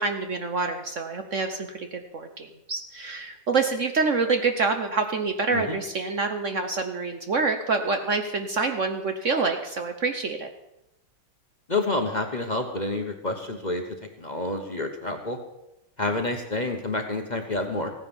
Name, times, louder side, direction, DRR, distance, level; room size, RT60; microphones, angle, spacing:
voice 1, 0.0-10.5, right 4 dB, 50° right, 6 dB, 1.1 m, -27 dB
voice 2, 11.7-13.8 14.2-15.4 16.0-17.9, left 2 dB, 30° left, 4 dB, 1.2 m, -28 dB
15.5 x 9.8 x 7.2 m, 0.89 s
omnidirectional pair, 2.0 m